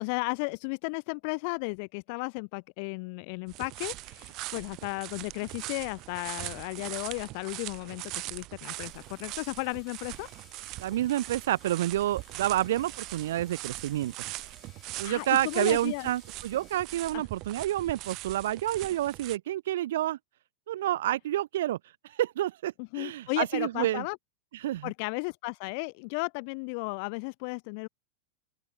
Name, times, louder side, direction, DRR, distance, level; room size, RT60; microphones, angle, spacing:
voice 1, 0.0-8.0 8.3-10.3 15.0-16.1 17.1-17.2 22.8-24.2 24.8-27.9, left 34 dB, 45° left, 0.8 m, -34 dB
sound 1, 3.5-19.4, right 20 dB, 40° right, 3.0 m, -41 dB
sound 2, 7.8-7.9 8.6-16.8, left 10 dB, 25° left, 7.9 m, -60 dB
voice 2, 10.8-14.1 15.0-20.2 20.7-24.0 24.5-24.9, right 13 dB, 55° right, 0.5 m, -29 dB
open air
figure-of-eight pair, 90°, 0 cm